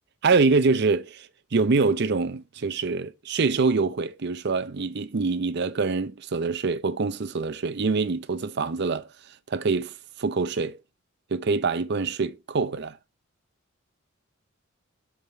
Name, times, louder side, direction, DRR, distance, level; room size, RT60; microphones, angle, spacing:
voice 1, 0.2-9.1 9.5-10.8 11.3-13.0, right 4 dB, 55° right, 0.6 m, -25 dB
5.3 x 4.9 x 5.3 m
head